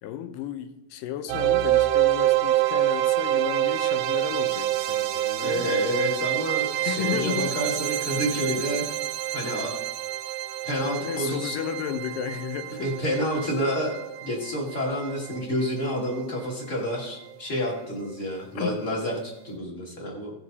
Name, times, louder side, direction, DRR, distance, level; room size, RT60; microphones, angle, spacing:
voice 1, 0.0-5.7 6.8-7.5 11.0-12.9 18.6-18.8, left 10 dB, 75° left, 9 dB, 2.3 m, -33 dB
sound 1, 1.3-16.3, right 14 dB, 85° right, 2.4 m, -27 dB
voice 2, 5.4-8.9 9.3-9.9 10.6-11.5 12.8-13.9 14.2-20.3, equal, 25° left, -2 dB, 1.9 m, -29 dB
17.0 x 5.8 x 4.0 m, 0.92 s
omnidirectional pair, 4.2 m